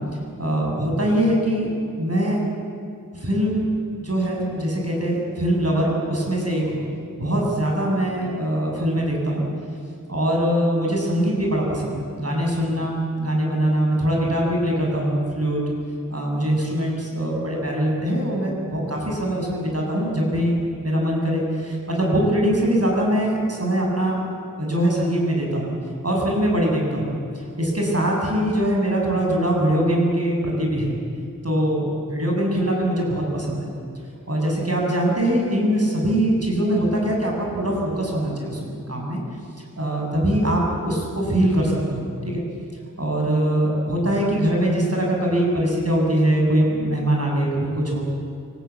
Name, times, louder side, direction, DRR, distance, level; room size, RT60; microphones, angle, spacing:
voice 1, 0.4-1.7 2.0-2.4 3.2-3.7 4.0-6.8 7.2-9.4 10.1-15.6 16.1-24.2 24.6-25.7 26.0-27.1 27.6-31.0 31.4-33.7 34.3-39.2 39.8-42.4 43.0-48.0, right 1 dB, 45° right, -1 dB, 7.1 m, -22 dB
25.0 x 18.0 x 8.3 m, 2.5 s
wide cardioid pair, 50°, 34 cm